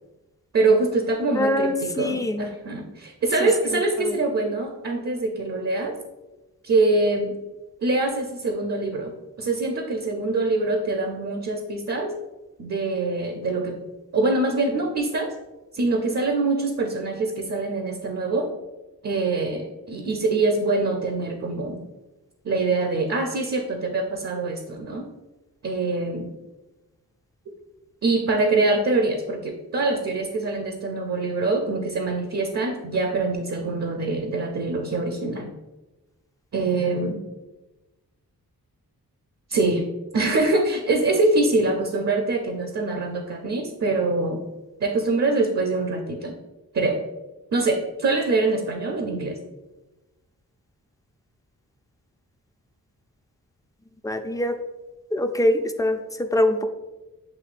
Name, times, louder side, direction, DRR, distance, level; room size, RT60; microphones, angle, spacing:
voice 1, 0.5-6.0 6.6-7.4 7.8-12.1 12.6-13.8 14.1-15.3 15.7-18.5 19.0-21.8 22.4-25.1 25.6-26.3 27.5-27.6 28.0-35.5 36.5-37.2 39.5-39.8 40.1-44.4 44.8-46.4 46.7-47.0 47.5-49.4, right 3 dB, 45° right, 3 dB, 0.6 m, -24 dB
voice 2, 1.4-2.4 3.4-4.2 54.0-54.6 55.1-56.7, left 1 dB, 10° left, 6 dB, 0.4 m, -24 dB
7.9 x 2.7 x 2.5 m, 1.1 s
cardioid pair, 60°, 37 cm